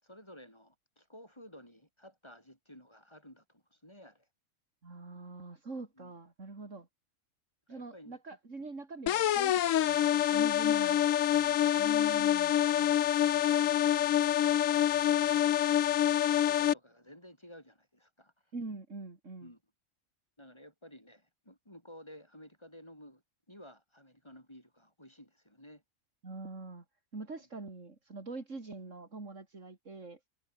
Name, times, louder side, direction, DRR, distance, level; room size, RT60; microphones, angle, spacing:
voice 1, 0.0-4.3 6.0-6.1 7.7-8.2 10.7-11.9 12.4-18.5 19.4-19.6 20.4-23.2 23.5-25.8 27.4-27.5, equal, 20° left, 7.1 m, -54 dB
voice 2, 4.8-6.9 7.7-11.0 11.8-12.9 18.5-19.5 26.2-26.8 27.1-30.2, right 3 dB, 70° right, 3.6 m, -44 dB
sound 1, 9.1-16.7, left 11 dB, 85° left, 1.2 m, -26 dB
omnidirectional pair, 1.3 m